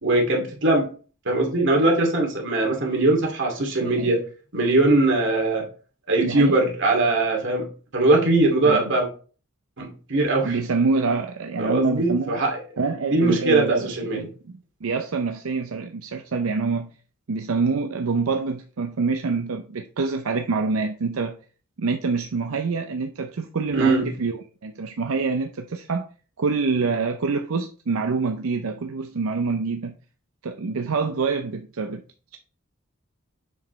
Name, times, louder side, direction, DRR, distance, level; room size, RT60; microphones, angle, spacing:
voice 1, 0.0-0.9 1.3-4.2 4.5-5.7 6.1-7.7 7.9-9.1 9.8-10.6 11.6-12.5 13.1-14.3 23.7-24.1, right 2 dB, 60° right, 2.5 m, -21 dB
voice 2, 3.8-4.1 6.2-6.6 8.6-8.9 10.4-12.4 12.8-16.9 17.3-21.4 21.8-26.1 26.4-30.0 30.4-32.0, right 4 dB, 90° right, 0.6 m, -26 dB
7.1 x 6.1 x 3.1 m
head